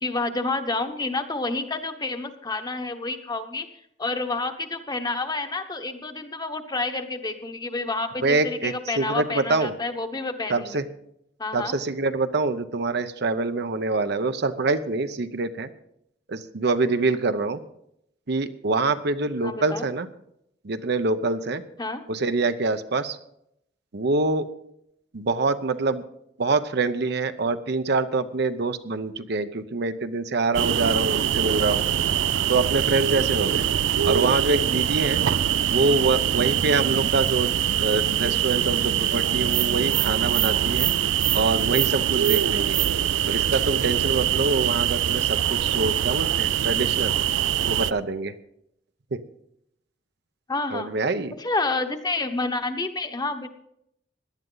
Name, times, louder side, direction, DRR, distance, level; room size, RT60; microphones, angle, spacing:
voice 1, 0.0-3.7 4.0-10.8 11.4-11.8 19.4-19.9 21.8-22.0 36.1-36.2 36.9-37.1 50.5-50.9 51.4-53.5, left 3 dB, 20° left, 7 dB, 1.0 m, -29 dB
voice 2, 8.2-9.7 10.5-10.8 11.5-15.7 16.3-17.6 18.3-20.1 20.6-21.6 22.1-23.2 23.9-24.5 25.1-26.0 26.4-31.8 32.5-33.7 34.1-35.2 35.7-37.5 37.8-40.9 41.3-42.8 43.3-47.1 47.6-48.3 49.1-49.2 50.7-51.3, right 3 dB, 65° right, 10 dB, 0.8 m, -25 dB
sound 1, 30.5-47.9, right 10 dB, 85° right, 0.4 m, -23 dB
17.5 x 11.0 x 3.9 m, 0.76 s
head